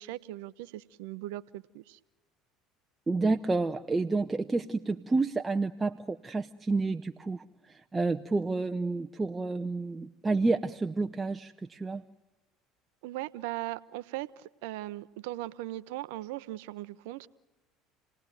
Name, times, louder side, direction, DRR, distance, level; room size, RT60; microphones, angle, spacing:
voice 1, 0.0-2.0 13.0-17.3, right 16 dB, 70° right, 16 dB, 0.8 m, -39 dB
voice 2, 3.1-12.0, right 3 dB, 20° right, 6 dB, 0.8 m, -30 dB
29.0 x 18.5 x 9.3 m, 1.2 s
hypercardioid pair, 70°, 0 cm